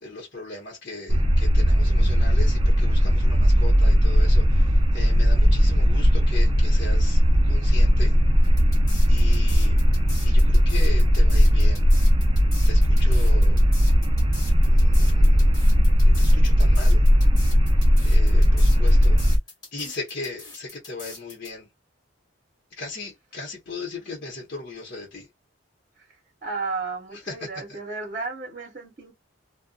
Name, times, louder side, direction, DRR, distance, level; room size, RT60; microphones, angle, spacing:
voice 1, 0.0-8.1 9.1-9.8 10.2-11.9 12.6-13.6 14.6-15.6 16.0-17.0 18.0-19.2 19.7-21.7 22.8-25.3 27.1-27.8, left 3 dB, 50° left, 0.9 m, -38 dB
sound 1, 1.1-19.4, equal, 25° right, 0.4 m, -18 dB
sound 2, 8.4-21.5, left 3 dB, 20° left, 1.3 m, -42 dB
voice 2, 26.4-29.1, right 3 dB, 40° right, 1.0 m, -33 dB
2.5 x 2.2 x 2.3 m
head